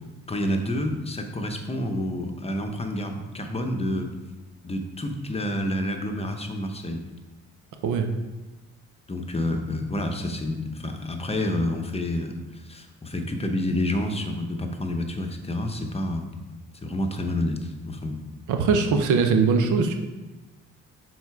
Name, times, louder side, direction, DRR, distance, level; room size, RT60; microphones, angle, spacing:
voice 1, 0.3-4.1 4.6-7.0 9.1-16.4 16.8-18.2, left 1 dB, 20° left, 4 dB, 0.9 m, -29 dB
voice 2, 18.5-20.0, right 5 dB, 80° right, 5 dB, 0.9 m, -21 dB
7.0 x 4.1 x 4.7 m, 1.1 s
cardioid pair, 90°, 30 cm